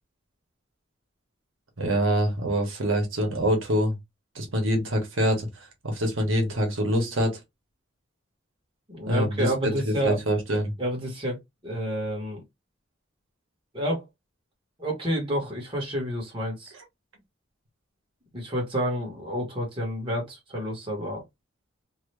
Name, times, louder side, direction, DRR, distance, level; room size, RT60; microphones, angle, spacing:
voice 1, 1.8-3.9 4.3-5.5 5.8-7.4 9.1-10.7, equal, 80° right, 1.2 m, -25 dB
voice 2, 8.9-10.2 10.8-11.4 11.6-12.4 13.7-14.0 14.8-16.7 18.3-21.2, equal, 25° right, 1.4 m, -29 dB
2.8 x 2.6 x 3.2 m
head